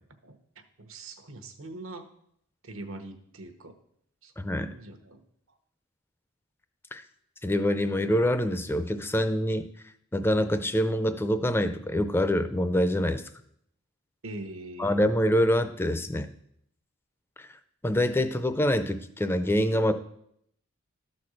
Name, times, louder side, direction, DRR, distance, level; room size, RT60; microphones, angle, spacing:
voice 1, 0.8-2.1 2.6-3.7 4.2-4.3 4.7-5.2 14.2-15.0, right 2 dB, 75° right, 7 dB, 1.0 m, -42 dB
voice 2, 4.4-4.7 6.9-7.0 7.4-9.6 10.1-13.3 14.8-16.3 17.4-17.5 17.8-19.9, equal, 10° left, 10 dB, 0.4 m, -25 dB
13.0 x 4.3 x 6.3 m, 0.71 s
head